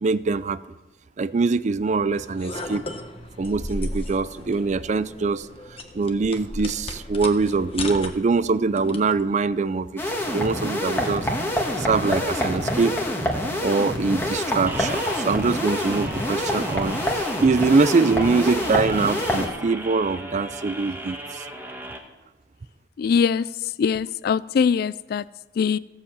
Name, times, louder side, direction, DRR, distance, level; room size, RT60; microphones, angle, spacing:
voice 1, 0.0-0.6 1.2-2.9 3.4-11.3 11.8-13.0 13.6-21.4, right 4 dB, 40° right, 16 dB, 0.4 m, -23 dB
sound 1, 2.1-9.2, left 2 dB, 35° left, 1.2 m, -35 dB
sound 2, 10.0-19.5, left 1 dB, 15° left, 1.8 m, -26 dB
sound 3, 14.7-22.0, right 1 dB, 10° right, 1.4 m, -36 dB
voice 2, 23.0-23.4 23.8-25.2 25.6-25.8, left 6 dB, 60° left, 18 dB, 0.3 m, -22 dB
15.5 x 7.2 x 7.4 m, 1.1 s
head